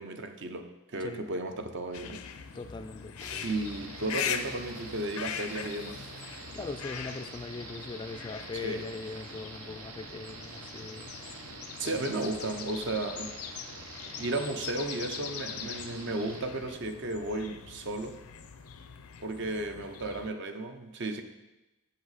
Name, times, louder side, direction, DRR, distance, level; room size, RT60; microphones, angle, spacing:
voice 1, 0.0-2.2 3.4-6.1 6.5-6.6 8.6-8.8 11.4-13.4 14.2-18.2 19.2-21.2, right 2 dB, 55° right, 7 dB, 0.7 m, -34 dB
sound 1, 1.9-20.3, left 8 dB, 80° left, 0.6 m, -41 dB
voice 2, 2.5-3.5 6.3-11.4 11.8-12.0, left 3 dB, 20° left, 8 dB, 0.3 m, -41 dB
sound 2, 3.2-16.4, right 3 dB, 75° right, 1.0 m, -46 dB
7.6 x 7.4 x 4.1 m, 1.0 s
head